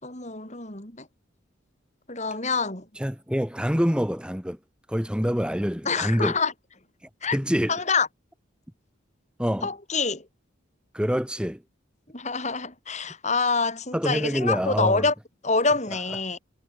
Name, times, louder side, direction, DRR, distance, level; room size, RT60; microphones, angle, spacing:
voice 1, 0.0-1.1 2.1-2.8 5.9-6.5 7.2-7.4 7.7-8.1 9.6-10.2 12.1-15.1 15.4-16.4, left 4 dB, 35° left, 4.4 m, -26 dB
voice 2, 3.0-4.6 4.9-6.4 7.3-7.8 9.4-9.7 10.9-11.6 13.9-15.1, equal, 5° right, 2.0 m, -26 dB
head